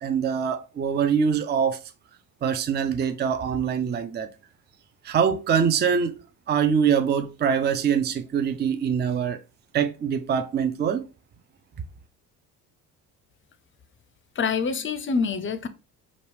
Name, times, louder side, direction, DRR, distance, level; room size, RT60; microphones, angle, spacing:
voice 1, 0.0-1.8 2.4-4.3 5.0-6.2 6.5-9.4 9.7-11.1, right 7 dB, 25° right, 0.6 m, -24 dB
voice 2, 14.4-15.7, left 5 dB, 25° left, 0.6 m, -26 dB
5.2 x 2.4 x 3.2 m
hypercardioid pair, 50°, 46 cm